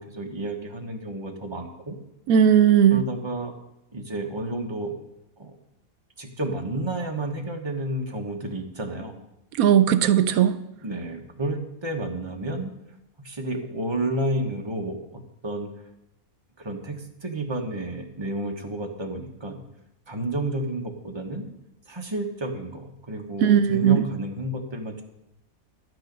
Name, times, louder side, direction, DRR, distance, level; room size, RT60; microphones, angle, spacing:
voice 1, 0.0-2.0 2.9-3.5 3.9-4.9 5.4-5.6 6.2-9.1 10.8-12.7 13.2-15.7 16.6-19.6 20.1-21.5 21.9-25.0, right 1 dB, 20° right, 2 dB, 1.3 m, -31 dB
voice 2, 2.3-3.0 9.6-10.6 23.4-24.0, right 9 dB, 90° right, 13 dB, 1.1 m, -17 dB
12.0 x 9.1 x 5.3 m, 0.86 s
omnidirectional pair, 1.5 m